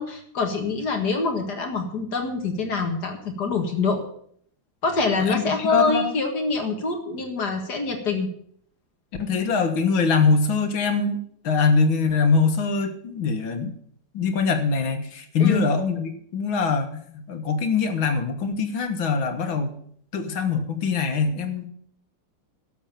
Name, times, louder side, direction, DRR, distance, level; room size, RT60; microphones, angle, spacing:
voice 1, 0.0-4.0 4.8-8.3 15.4-15.6, left 4 dB, 55° left, 4 dB, 2.3 m, -25 dB
voice 2, 5.2-6.1 9.2-11.2 11.4-13.7 14.1-19.7 20.1-21.7, left 4 dB, 85° left, 6 dB, 2.3 m, -23 dB
12.0 x 7.3 x 8.9 m, 0.64 s
omnidirectional pair, 2.1 m